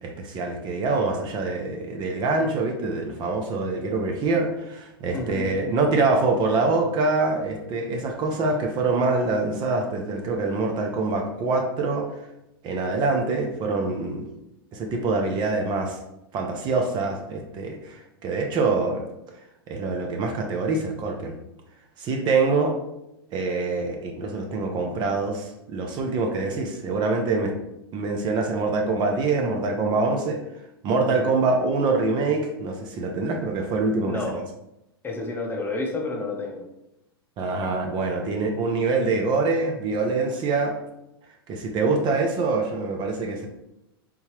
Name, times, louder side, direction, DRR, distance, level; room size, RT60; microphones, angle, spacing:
voice 1, 0.0-12.1 12.6-14.3 14.7-16.0 16.3-19.0 19.7-21.3 22.0-22.7 23.3-27.5 27.9-30.4 30.8-34.2 37.4-40.7 41.5-43.5, right 3 dB, 35° right, 2 dB, 0.6 m, -25 dB
voice 2, 5.1-5.5 31.1-31.4 34.0-34.4 35.0-36.6, left 2 dB, 15° left, 0 dB, 0.7 m, -30 dB
3.6 x 2.7 x 3.0 m, 0.86 s
hypercardioid pair, 105°, 13 cm